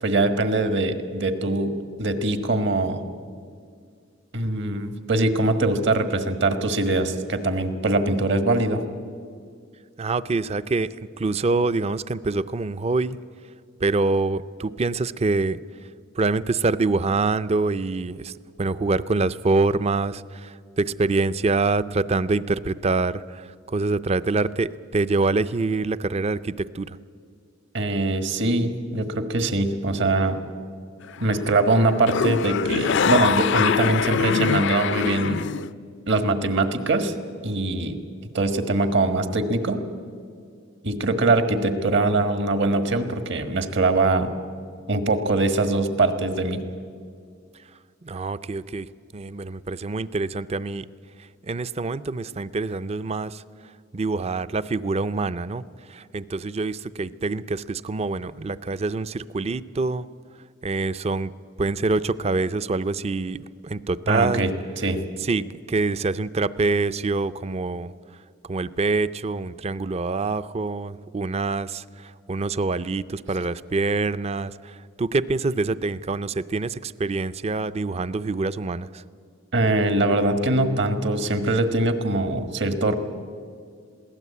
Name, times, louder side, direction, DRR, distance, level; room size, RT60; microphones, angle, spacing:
voice 1, 0.0-3.0 4.3-8.8 27.7-30.4 31.2-35.5 36.1-37.1 37.4-38.0 38.3-39.8 40.8-44.3 44.9-46.6 64.1-64.5 64.8-65.0 79.5-82.9, right 2 dB, 60° right, 9 dB, 1.6 m, -22 dB
voice 2, 10.0-13.2 13.8-15.6 16.2-27.0 48.0-50.9 51.2-53.4 53.9-60.1 60.6-61.3 61.6-63.4 63.6-64.5 65.2-67.9 68.4-79.0, right 3 dB, 30° right, 16 dB, 0.5 m, -25 dB
sound 1, 31.0-31.5 31.8-35.7, left 6 dB, 60° left, 0.5 m, -23 dB
21.5 x 16.5 x 8.4 m, 2.2 s
head